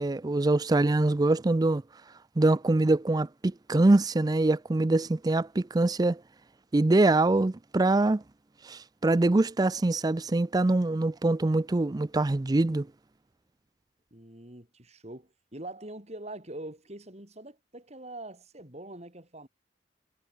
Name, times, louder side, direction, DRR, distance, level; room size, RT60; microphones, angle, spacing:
voice 1, 0.0-1.8 2.4-6.2 6.7-8.2 8.7-12.9, right 2 dB, 20° right, 0.4 m, -24 dB
voice 2, 14.1-19.5, right 1 dB, 40° right, 5.9 m, -43 dB
head